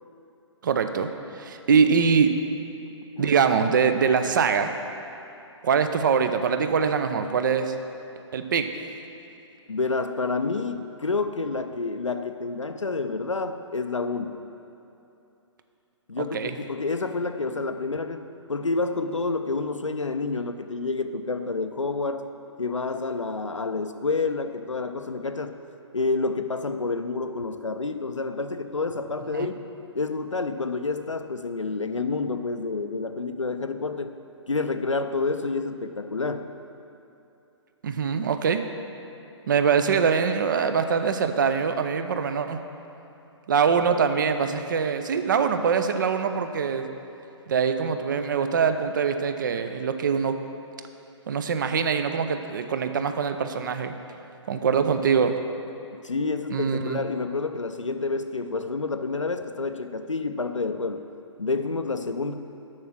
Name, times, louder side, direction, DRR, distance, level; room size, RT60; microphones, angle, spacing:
voice 1, 0.6-1.1 1.4-2.3 3.2-4.7 5.6-7.7 8.3-8.7 16.2-16.5 29.3-29.5 37.8-38.6 39.5-42.6 43.5-46.9 47.5-50.4 51.3-54.0 54.5-55.3 56.5-57.0, right 6 dB, 40° right, 8 dB, 0.5 m, -23 dB
voice 2, 9.7-14.4 16.1-18.2 18.5-22.3 22.6-25.6 25.9-29.6 29.9-34.1 34.5-36.5 56.0-61.1 61.4-62.3, left 3 dB, 85° left, 8 dB, 0.5 m, -29 dB
7.3 x 6.0 x 6.3 m, 2.8 s
figure-of-eight pair, 130°, 16 cm